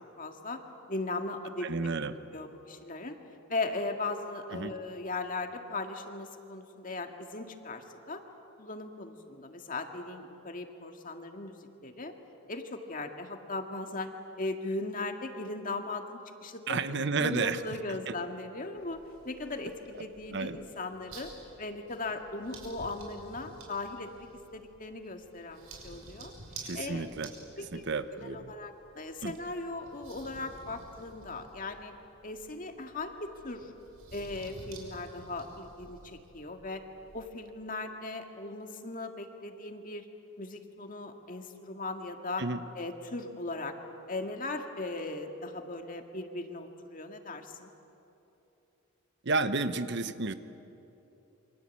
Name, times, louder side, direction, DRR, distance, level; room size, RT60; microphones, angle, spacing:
voice 1, 0.2-0.6 0.9-1.7 2.3-3.2 3.5-8.2 8.6-12.1 12.5-14.1 14.4-16.8 17.2-19.0 19.2-21.3 21.6-26.3 26.7-27.2 27.6-31.9 32.2-33.7 34.1-36.8 37.1-40.1 40.4-42.4 42.8-43.7 44.1-47.7, left 2 dB, 40° left, 5 dB, 2.0 m, -38 dB
voice 2, 1.6-2.1 4.5-4.7 16.7-17.6 17.9-18.1 20.3-20.6 26.6-27.3 27.6-28.5 29.2-29.3 42.4-42.6 49.2-50.3, right 3 dB, 55° right, 11 dB, 1.0 m, -32 dB
sound 1, 18.8-37.2, right 2 dB, 85° right, 6.2 m, -52 dB
28.0 x 25.0 x 8.4 m, 3.0 s
head